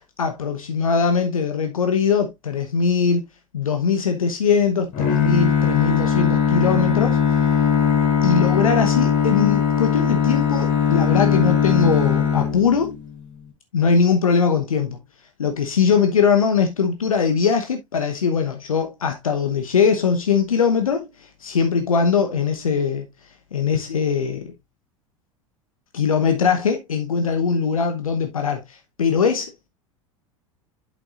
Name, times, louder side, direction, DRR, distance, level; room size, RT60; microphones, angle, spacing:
voice 1, 0.2-3.2 3.5-7.2 8.2-13.0 13.7-15.0 15.4-23.1 23.5-24.5 25.9-29.5, left 6 dB, 80° left, 1.0 m, -21 dB
Bowed string instrument, 4.9-13.2, left 7 dB, 50° left, 3.1 m, -20 dB
8.3 x 6.8 x 2.5 m
figure-of-eight pair, 80°, 17 cm